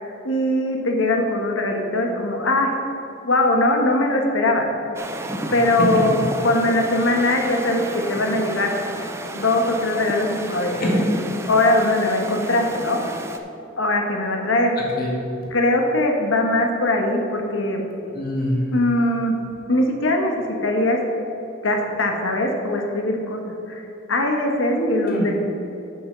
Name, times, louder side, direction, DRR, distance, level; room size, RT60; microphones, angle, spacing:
voice 1, 0.2-2.8 3.2-4.7 5.5-6.2 6.4-8.7 9.3-10.7 11.5-13.0 13.8-14.8 15.5-17.8 18.7-19.4 19.7-20.3 20.6-21.0 21.6-23.8 24.1-25.3, left 1 dB, 85° left, 2 dB, 1.3 m, -21 dB
sound 1, 4.9-13.4, right 1 dB, 15° right, 0.5 m, -33 dB
voice 2, 10.7-11.1 14.8-15.1 18.1-18.6 24.7-25.3, equal, 50° left, -3 dB, 2.1 m, -24 dB
7.9 x 5.8 x 6.7 m, 2.8 s
head